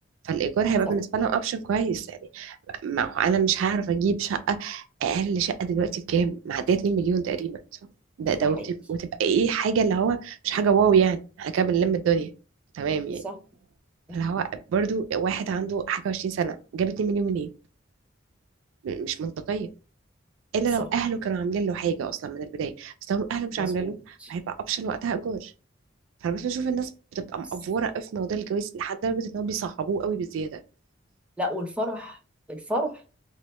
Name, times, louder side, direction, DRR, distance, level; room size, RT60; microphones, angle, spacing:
voice 1, 0.2-2.6 2.8-7.6 8.2-12.3 12.7-13.2 14.1-17.5 18.8-19.7 20.5-25.5 26.2-30.6, right 6 dB, 85° right, 0.3 m, -26 dB
voice 2, 23.6-23.9 24.2-24.3 31.4-32.2 32.5-32.9, equal, 5° right, 0.4 m, -31 dB
2.1 x 2.1 x 2.9 m
head